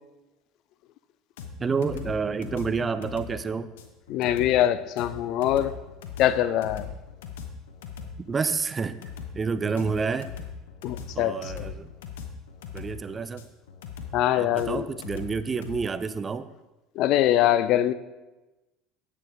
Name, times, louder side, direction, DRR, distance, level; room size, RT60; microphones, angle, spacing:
sound 1, 1.4-15.8, left 7 dB, 75° left, 1.0 m, -40 dB
voice 1, 1.6-3.7 8.2-9.0 9.3-10.3 11.2-11.9 12.7-13.4 14.3-16.5, right 5 dB, 25° right, 14 dB, 0.5 m, -29 dB
voice 2, 4.1-5.7 6.2-6.9 10.8-11.7 14.1-14.8 17.0-17.9, left 12 dB, 55° left, 14 dB, 0.6 m, -23 dB
11.0 x 9.0 x 3.6 m, 1.1 s
hypercardioid pair, 70°, 0 cm